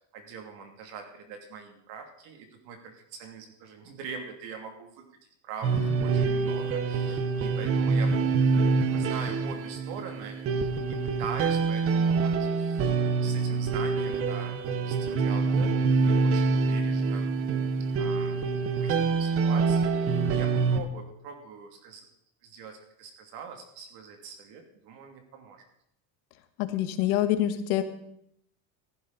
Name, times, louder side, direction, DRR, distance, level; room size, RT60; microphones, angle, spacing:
voice 1, 0.0-5.0 5.4-8.2 8.8-13.0 13.2-14.6 14.8-17.3 18.0-18.5 18.8-22.1 22.4-25.6, right 6 dB, 60° right, 4 dB, 2.8 m, -43 dB
sound 1, 5.6-20.8, right 4 dB, 35° right, 0.8 m, -26 dB
voice 2, 26.6-27.8, left 12 dB, 80° left, 9 dB, 1.5 m, -26 dB
14.5 x 11.5 x 4.1 m, 0.75 s
cardioid pair, 170°, 42 cm